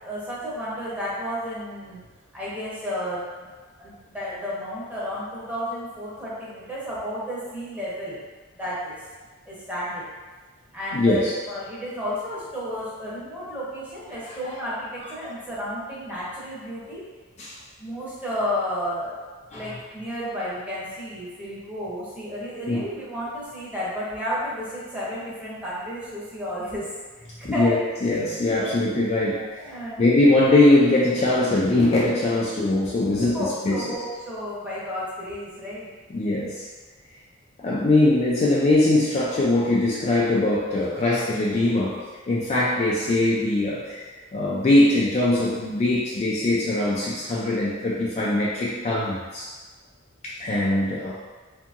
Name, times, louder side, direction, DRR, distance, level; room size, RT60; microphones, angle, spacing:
voice 1, 0.0-2.0 2.3-3.3 3.8-8.2 8.6-9.0 9.5-10.1 10.7-17.0 17.8-19.2 19.5-26.9 27.4-27.8 28.6-28.7 29.4-30.0 33.3-35.9, equal, 5° right, -9 dB, 0.8 m, -32 dB
voice 2, 10.9-11.3 14.3-14.6 17.4-17.6 19.5-19.7 22.7-22.8 27.4-27.8 28.0-29.5 30.0-33.9 36.1-36.7 37.6-44.0 44.3-49.5 50.2-51.2, left 2 dB, 30° left, -6 dB, 0.3 m, -21 dB
2.7 x 2.7 x 2.4 m, 1.3 s
head